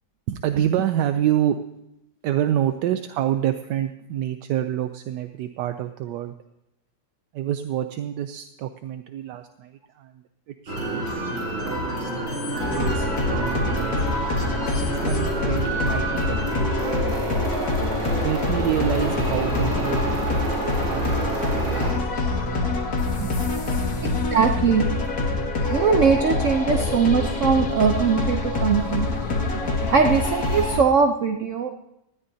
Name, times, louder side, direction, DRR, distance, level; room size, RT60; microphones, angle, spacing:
voice 1, 0.3-1.6 2.2-6.3 7.3-10.2 10.6-11.1 11.6-12.1 12.5-13.9 14.7-17.1 18.2-22.0 23.2-23.3, right 11 dB, 80° right, 9 dB, 1.2 m, -27 dB
sound 1, 10.7-21.9, right 2 dB, 40° right, 3.8 m, -28 dB
sound 2, 12.6-30.8, left 2 dB, 55° left, 2.2 m, -25 dB
voice 2, 24.0-24.9 25.7-29.1 29.9-31.7, right 6 dB, 55° right, 5 dB, 0.9 m, -21 dB
19.0 x 13.5 x 2.8 m, 0.86 s
omnidirectional pair, 1.9 m